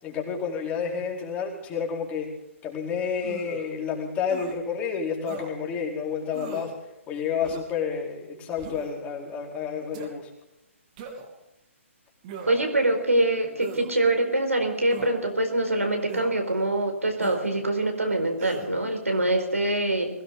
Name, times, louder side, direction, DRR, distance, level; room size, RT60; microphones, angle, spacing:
voice 1, 0.0-2.3 2.6-6.7 7.1-10.3, left 6 dB, 20° left, -1 dB, 4.5 m, -30 dB
sound 1, 3.2-3.7 4.3-4.5 5.2-5.5 6.3-6.8 7.4-7.8 8.6-9.0 9.9-10.1 11.0-11.4 12.2-12.8 13.6-13.9 14.9-15.2 16.1-16.3 17.2-17.5 18.4-18.7, right 5 dB, 35° right, 3.1 m, -39 dB
voice 2, 12.5-20.1, right 1 dB, 85° right, 4 dB, 4.6 m, -24 dB
21.5 x 17.5 x 3.8 m, 0.92 s
figure-of-eight pair, 130°, 7 cm